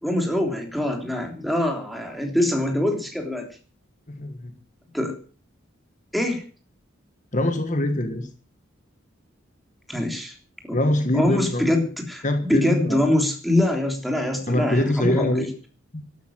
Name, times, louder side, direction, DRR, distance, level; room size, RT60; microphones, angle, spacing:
voice 1, 0.0-3.5 4.9-5.2 6.1-6.4 9.9-10.3 10.6-10.8 11.1-15.5, left 1 dB, ahead, 3 dB, 3.4 m, -24 dB
voice 2, 4.1-4.5 7.3-8.3 10.7-11.6 12.2-13.0 14.5-15.5 15.9-16.0, left 1 dB, 40° left, 7 dB, 1.5 m, -23 dB
12.5 x 12.5 x 7.4 m, 0.40 s
head